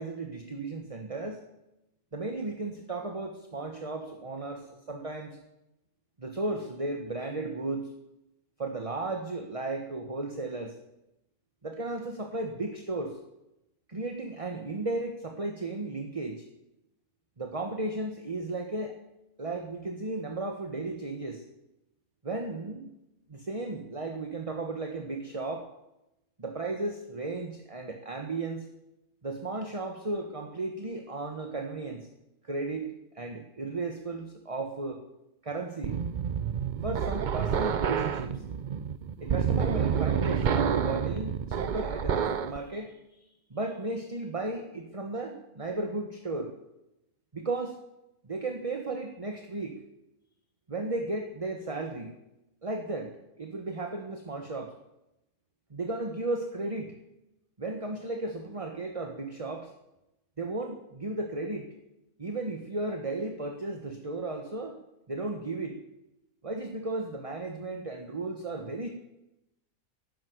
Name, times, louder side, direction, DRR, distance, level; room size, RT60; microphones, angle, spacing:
voice 1, 0.0-1.4 2.1-5.4 6.2-7.9 8.6-10.8 11.6-13.2 13.9-16.4 17.4-19.0 19.4-21.4 22.2-22.9 23.3-25.7 26.4-28.7 29.2-32.1 32.4-32.9 33.1-35.0 35.4-36.0 36.8-38.4 39.2-46.5 47.3-47.8 48.2-49.7 50.7-52.2 52.6-54.7 55.7-56.9 57.6-59.7 60.4-61.7 62.2-64.8 65.1-65.8 66.4-68.9, right 2 dB, 25° right, 3 dB, 1.4 m, -35 dB
sound 1, 35.8-42.6, right 7 dB, 50° right, 0.6 m, -28 dB
12.5 x 10.5 x 9.5 m, 0.90 s
omnidirectional pair, 1.5 m